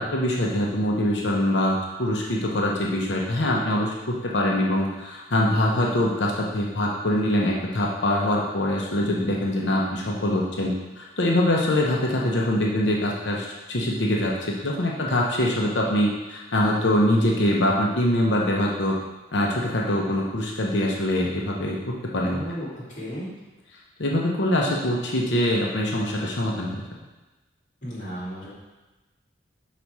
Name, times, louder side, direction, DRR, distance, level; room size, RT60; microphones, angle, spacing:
voice 1, 0.0-18.9 19.3-22.4 24.0-26.8, left 1 dB, 70° left, -2 dB, 0.8 m, -24 dB
voice 2, 22.3-23.3 27.8-28.5, equal, 45° left, -7 dB, 2.1 m, -34 dB
5.7 x 4.1 x 4.7 m, 1.1 s
head